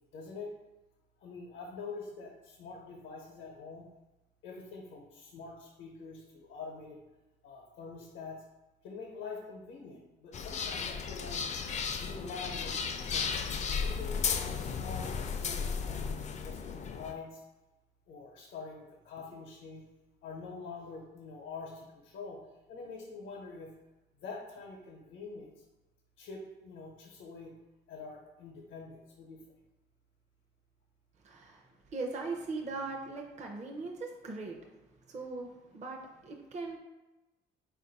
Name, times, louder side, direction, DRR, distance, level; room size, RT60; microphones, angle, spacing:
voice 1, 0.1-0.5 1.2-3.9 4.4-7.0 7.4-8.4 8.8-11.4 12.0-13.5 13.8-16.0 16.4-17.4 18.1-19.8 20.2-22.4 22.7-23.7 24.2-25.5 26.2-27.5 27.9-29.4, left 4 dB, 85° left, -1 dB, 0.8 m, -45 dB
sound 1, 10.3-17.1, left 6 dB, 35° left, 0.4 m, -34 dB
voice 2, 31.2-31.6 31.9-34.6 35.1-36.8, right 3 dB, 35° right, 1 dB, 0.5 m, -39 dB
4.0 x 2.5 x 3.9 m, 1.1 s
cardioid pair, 90°, 20 cm